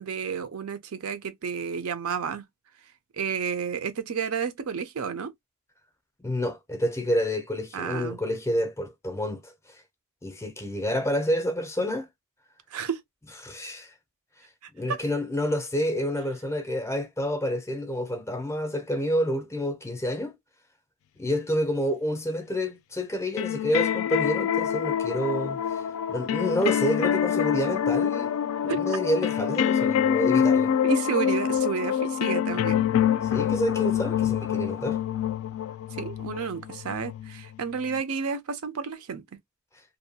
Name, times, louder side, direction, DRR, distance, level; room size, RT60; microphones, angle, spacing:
voice 1, 0.0-2.4 3.1-5.3 7.7-8.2 12.7-13.0 14.9-15.0 28.7-28.8 30.8-32.8 36.0-39.2, right 6 dB, 80° right, 0.5 m, -31 dB
voice 2, 6.2-9.5 10.2-12.1 13.4-13.9 14.7-20.3 21.2-25.8 26.1-28.3 28.6-30.7 33.2-35.0, equal, 15° left, 0.5 m, -28 dB
sound 1, 23.4-38.0, left 9 dB, 75° left, 0.3 m, -26 dB
2.6 x 2.2 x 2.6 m
head